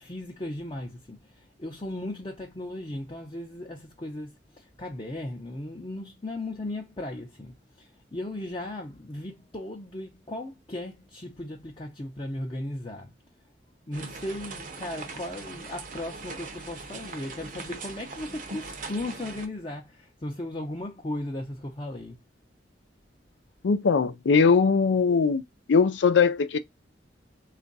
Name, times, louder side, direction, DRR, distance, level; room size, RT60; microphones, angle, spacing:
voice 1, 0.0-13.1 13.9-22.2, left 1 dB, 30° left, 0.6 m, -36 dB
sound 1, 13.9-19.5, right 3 dB, 45° right, 0.7 m, -40 dB
voice 2, 23.6-25.4 25.7-26.6, left 5 dB, 90° left, 0.5 m, -20 dB
3.4 x 2.5 x 3.9 m
head